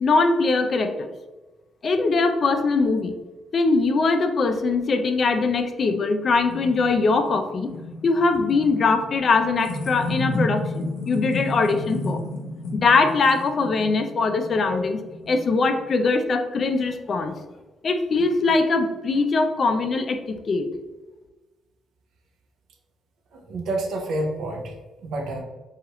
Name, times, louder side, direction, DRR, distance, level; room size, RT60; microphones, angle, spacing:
voice 1, 0.0-1.1 1.8-3.2 3.5-7.7 8.0-12.2 12.7-15.0 15.3-17.4 17.8-20.7, left 3 dB, 50° left, 8 dB, 0.3 m, -21 dB
sound 1, 5.9-16.0, left 2 dB, 85° left, 0.6 m, -32 dB
voice 2, 23.3-24.7 25.0-25.4, right 1 dB, 75° right, 2 dB, 0.5 m, -28 dB
2.8 x 2.3 x 2.9 m, 1.2 s
cardioid pair, 90°, 0 cm